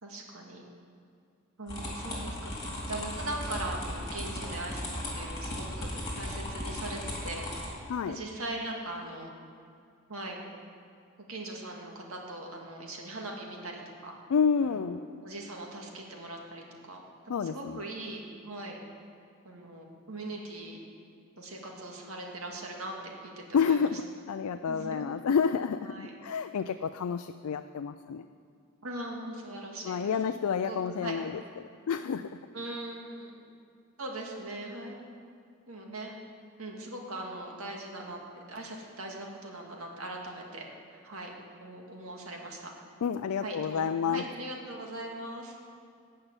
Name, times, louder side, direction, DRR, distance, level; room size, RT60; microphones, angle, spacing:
voice 1, 0.0-0.6 1.6-2.5 2.9-7.4 8.1-9.3 10.1-10.4 11.2-14.2 14.6-14.9 15.2-17.0 17.4-18.8 19.4-20.8 21.4-23.9 24.7-25.1 25.9-26.1 28.8-30.1 30.6-31.2 32.5-33.4 34.0-35.0 35.7-36.2 36.6-38.2 38.5-41.3 41.6-42.7 43.4-45.6, right 2 dB, 80° right, 0 dB, 2.1 m, -40 dB
sound 1, 1.7-7.7, left 1 dB, 20° left, 2.6 m, -37 dB
voice 2, 14.3-15.0 17.3-17.8 23.5-28.2 29.8-32.4 43.0-44.2, left 6 dB, 90° left, 9 dB, 0.4 m, -29 dB
14.5 x 5.7 x 8.9 m, 2.3 s
head